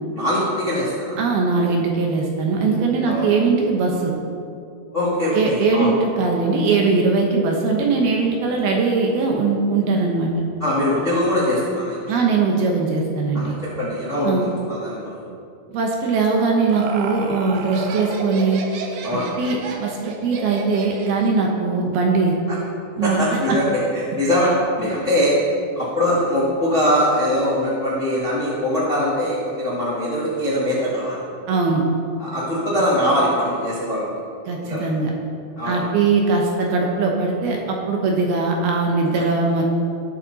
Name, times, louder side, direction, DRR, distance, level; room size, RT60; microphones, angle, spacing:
voice 1, 0.1-1.2 1.5-1.7 3.0-3.3 4.9-5.9 10.6-12.0 13.3-15.2 19.0-19.3 23.0-25.3 25.7-31.2 32.2-34.1 34.6-34.9 35.6-35.8, equal, 90° left, -7 dB, 0.6 m, -22 dB
voice 2, 1.2-4.1 5.3-10.3 12.1-13.6 14.2-14.5 15.7-18.6 19.1-22.4 23.0-23.6 31.5-31.8 34.5-35.1 35.6-39.7, right 4 dB, 70° right, 0 dB, 2.5 m, -20 dB
Laughter, 16.3-21.4, right 3 dB, 90° right, 3.6 m, -31 dB
19.0 x 7.4 x 4.1 m, 2.5 s
omnidirectional pair, 5.5 m